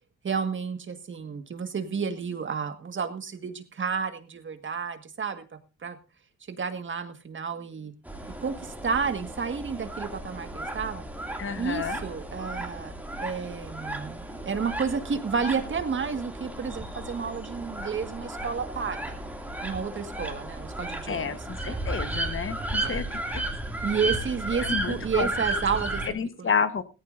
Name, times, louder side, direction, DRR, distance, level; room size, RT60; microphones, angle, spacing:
voice 1, 0.2-5.4 5.8-6.0 6.5-7.9 8.4-11.1 11.6-12.9 13.2-19.1 19.6-21.4 21.7-21.8 22.8-23.0 23.8-26.0 26.4-26.5, right 6 dB, 40° right, 8 dB, 1.8 m, -31 dB
sound 1, 8.0-26.1, right 2 dB, 5° right, 2.5 m, -34 dB
voice 2, 11.4-12.0 21.1-23.4 24.6-25.3 26.0-26.8, left 6 dB, 45° left, 11 dB, 1.2 m, -30 dB
17.5 x 15.0 x 2.6 m, 0.30 s
cardioid pair, 90°, 30 cm